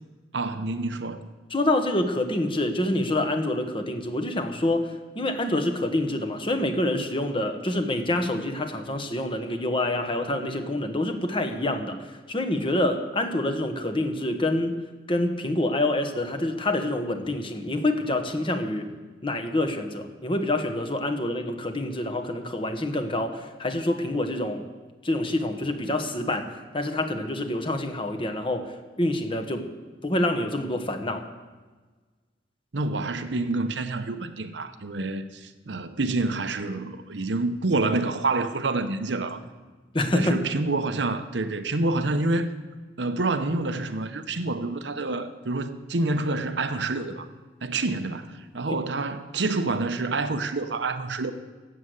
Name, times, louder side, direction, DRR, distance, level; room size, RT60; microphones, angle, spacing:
voice 1, 0.3-1.3 32.7-39.4 40.1-42.5 43.0-47.3 47.6-51.3, right 3 dB, 85° right, 0.9 m, -27 dB
voice 2, 1.5-12.0 12.3-14.7 15.1-18.9 19.2-24.6 25.0-26.5 26.7-29.7 30.0-31.2 39.9-40.4, left 1 dB, 30° left, 1.2 m, -26 dB
13.0 x 7.9 x 8.1 m
head